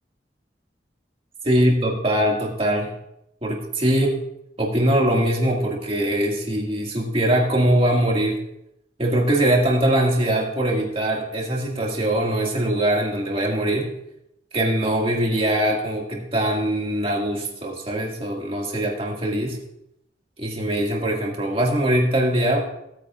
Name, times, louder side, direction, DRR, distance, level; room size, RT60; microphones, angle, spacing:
voice 1, 1.4-2.9 3.4-4.2 4.6-8.4 9.0-13.9 14.5-19.6 20.4-22.6, right 1 dB, 35° right, -1 dB, 2.1 m, -22 dB
17.0 x 8.9 x 2.5 m, 0.81 s
head